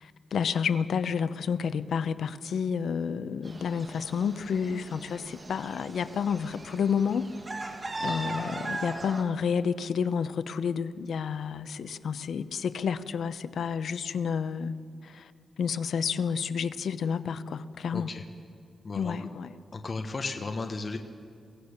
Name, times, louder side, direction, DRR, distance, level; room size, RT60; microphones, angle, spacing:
voice 1, 0.0-7.3 7.5-7.7 8.0-14.7 15.0-15.3 15.6-18.1 18.9-19.5, left 6 dB, 65° left, 13 dB, 0.7 m, -30 dB
sound 1, 3.4-9.2, right 2 dB, 25° right, 1.8 m, -38 dB
voice 2, 17.9-18.2 18.8-19.2 19.7-21.0, left 3 dB, 35° left, 5 dB, 1.2 m, -34 dB
23.5 x 16.5 x 6.6 m, 2.4 s
wide cardioid pair, 160°, 0 cm